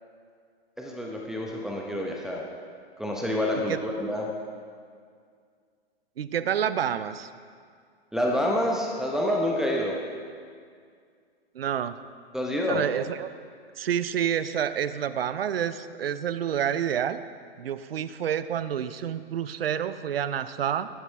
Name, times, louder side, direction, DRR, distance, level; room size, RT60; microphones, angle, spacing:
voice 1, 0.8-2.4 3.0-4.2 8.1-10.0 12.3-12.8, left 1 dB, ahead, -2 dB, 0.9 m, -27 dB
voice 2, 6.2-7.3 11.5-12.0 12.7-13.3 13.8-17.2 17.6-20.9, right 9 dB, 70° right, 13 dB, 0.6 m, -28 dB
12.5 x 12.0 x 3.4 m, 2.1 s
figure-of-eight pair, 110°, 31 cm